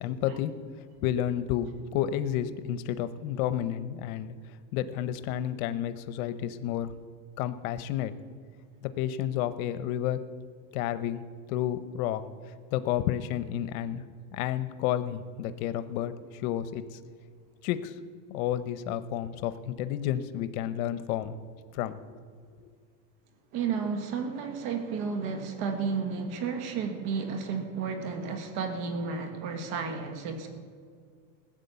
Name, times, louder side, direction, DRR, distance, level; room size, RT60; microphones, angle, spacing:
voice 1, 0.0-6.9 7.4-8.1 8.8-10.2 10.7-11.2 11.5-14.0 14.3-17.0 17.6-18.0 18.3-21.4 21.7-22.2 22.6-22.7, left 11 dB, 80° left, 12 dB, 0.8 m, -31 dB
voice 2, 23.5-30.6, right 5 dB, 60° right, 6 dB, 1.7 m, -32 dB
16.0 x 9.0 x 6.9 m, 2.2 s
cardioid pair, 140°, 42 cm